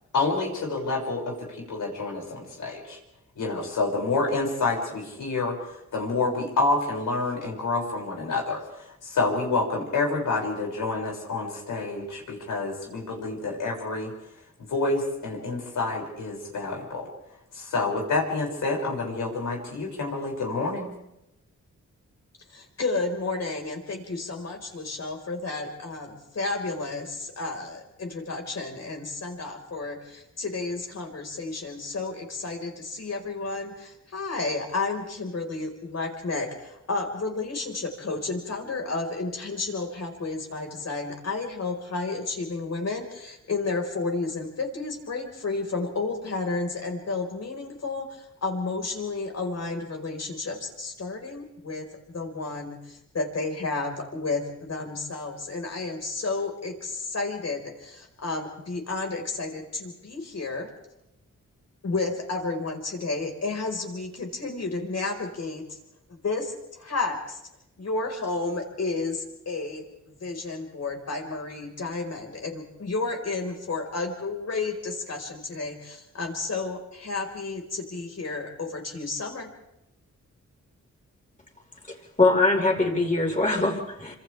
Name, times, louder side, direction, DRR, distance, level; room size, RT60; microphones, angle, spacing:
voice 1, 0.1-1.2 1.7-3.0 3.4-5.5 5.9-14.1 14.7-17.1 17.5-20.9, left 3 dB, 90° left, -1 dB, 6.6 m, -28 dB
voice 2, 22.5-60.7 61.8-65.8 66.2-67.4 67.8-79.5, left 3 dB, 60° left, 2 dB, 5.0 m, -32 dB
voice 3, 81.9-84.1, left 2 dB, 25° left, 0 dB, 5.0 m, -23 dB
28.5 x 26.0 x 3.5 m, 0.87 s
cardioid pair, 90°, 30 cm